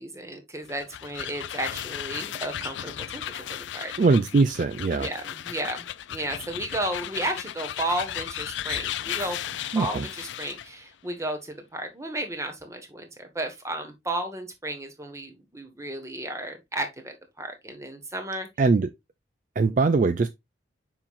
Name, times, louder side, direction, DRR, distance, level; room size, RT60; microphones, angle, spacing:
voice 1, 0.0-3.9 5.0-18.5, right 1 dB, 15° right, 1.4 m, -33 dB
sound 1, 0.6-10.7, left 11 dB, 75° left, 0.4 m, -35 dB
voice 2, 4.0-5.1 9.7-10.1 18.6-18.9 19.6-20.3, right 3 dB, 40° right, 0.3 m, -21 dB
7.0 x 5.6 x 2.5 m
head